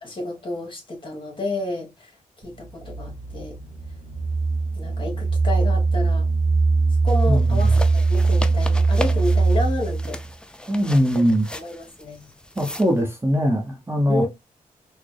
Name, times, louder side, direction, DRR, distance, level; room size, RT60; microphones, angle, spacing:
voice 1, 0.0-2.1 2.4-3.6 4.8-6.3 7.0-10.2 11.1-11.2 11.5-12.3 14.1-14.3, left 2 dB, 35° left, 1.6 m, -30 dB
sound 1, 2.4-10.3, right 3 dB, 55° right, 0.7 m, -21 dB
sound 2, 7.1-13.0, left 1 dB, 5° left, 0.4 m, -37 dB
voice 2, 7.3-7.7 10.7-11.5 12.6-14.2, equal, 15° right, 0.9 m, -21 dB
4.1 x 2.0 x 3.3 m
cardioid pair, 90°, 15 cm